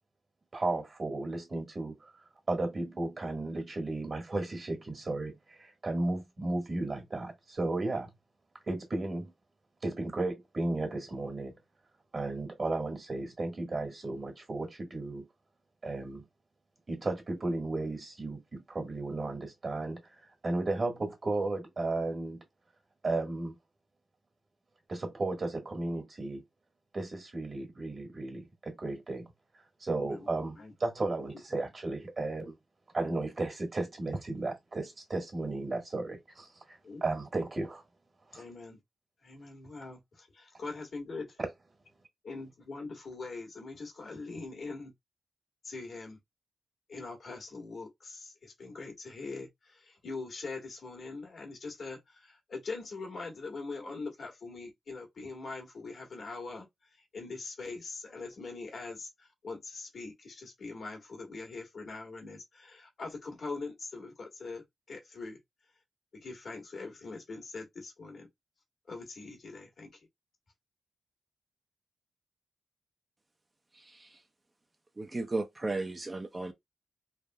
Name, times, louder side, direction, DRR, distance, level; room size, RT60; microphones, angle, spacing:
voice 1, 0.5-2.0 2.5-8.1 8.7-9.3 9.8-11.5 12.1-15.3 15.8-16.2 16.9-20.0 20.4-22.4 23.0-23.6 24.9-26.4 26.9-29.3 29.8-32.5 32.9-37.8 38.3-38.4, right 2 dB, 45° right, 1.6 m, -34 dB
voice 2, 30.0-30.3 30.6-30.7 31.2-31.3 31.5-31.6 36.8-37.1 38.3-38.8 39.2-41.4 42.2-44.9 45.6-46.2 46.9-56.6 57.1-65.4 66.1-68.3 68.9-69.9, left 3 dB, 70° left, 1.4 m, -42 dB
voice 3, 73.8-74.2 75.0-76.5, right 2 dB, 30° right, 0.7 m, -35 dB
3.4 x 2.5 x 2.2 m
cardioid pair, 65°, 0 cm